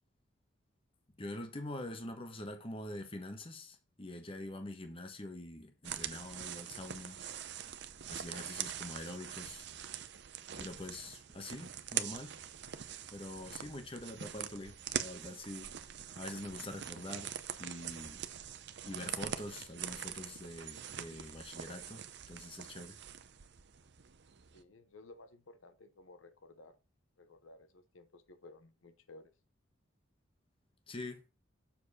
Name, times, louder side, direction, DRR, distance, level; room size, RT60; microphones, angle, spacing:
voice 1, 1.2-7.2 8.1-9.7 10.6-12.3 13.1-15.7 16.1-18.2 18.8-23.0 30.9-31.3, left 1 dB, 25° left, 1.2 m, -45 dB
sound 1, 5.8-24.6, right 9 dB, 55° right, 0.6 m, -43 dB
voice 2, 24.5-26.8 27.2-29.3, left 2 dB, 85° left, 0.9 m, -56 dB
7.2 x 4.6 x 5.5 m
head